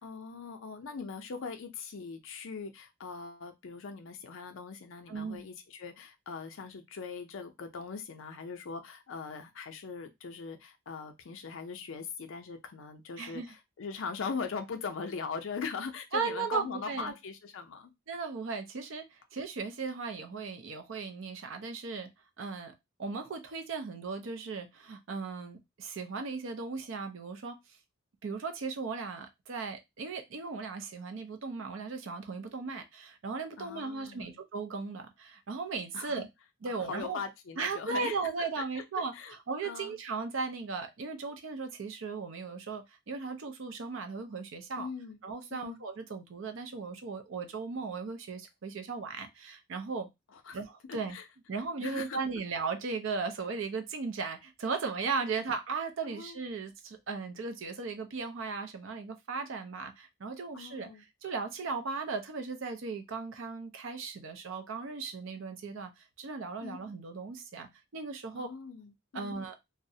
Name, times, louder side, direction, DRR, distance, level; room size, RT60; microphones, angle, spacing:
voice 1, 0.0-17.9 33.6-34.4 35.9-36.2 36.9-38.5 38.8-39.3 39.6-40.0 44.8-45.2 45.5-45.8 50.3-50.6 50.9-51.2 51.8-52.2 56.0-56.4 60.5-61.0 66.6-66.8 68.3-69.4, left 5 dB, 65° left, 0.4 m, -41 dB
voice 2, 5.1-5.4 13.2-13.5 16.1-17.1 18.1-22.1 22.4-22.7 23.0-27.6 28.2-36.3 36.6-37.2 37.6-44.9 45.2-50.1 50.5-51.2 51.5-60.9 61.2-68.5 69.1-69.5, right 4 dB, 60° right, 0.5 m, -37 dB
2.4 x 2.0 x 2.6 m
head